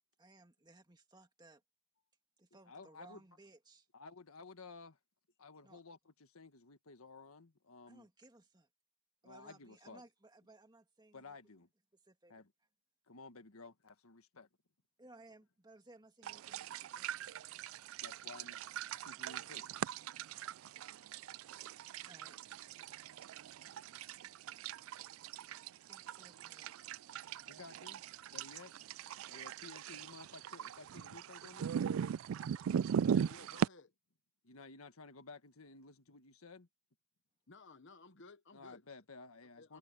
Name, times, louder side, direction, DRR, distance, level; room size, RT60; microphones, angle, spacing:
voice 1, 0.2-1.6 2.4-3.9 5.6-5.8 7.9-8.7 9.2-11.4 12.0-12.3 15.0-17.1 22.0-22.4 25.8-26.7, right 2 dB, 20° right, 2.0 m, -61 dB
voice 2, 2.7-3.2 3.9-5.0 5.4-8.1 9.2-10.0 11.1-11.7 12.3-12.5 13.1-14.5 18.0-18.6 18.9-19.8 27.5-28.0 28.3-28.7 29.2-31.8 34.4-36.7 38.5-39.8, left 3 dB, 85° left, 1.6 m, -54 dB
sound 1, 16.2-33.7, right 8 dB, 70° right, 0.3 m, -40 dB
voice 3, 33.1-33.9 37.5-38.9 39.6-39.8, left 3 dB, 60° left, 1.0 m, -57 dB
head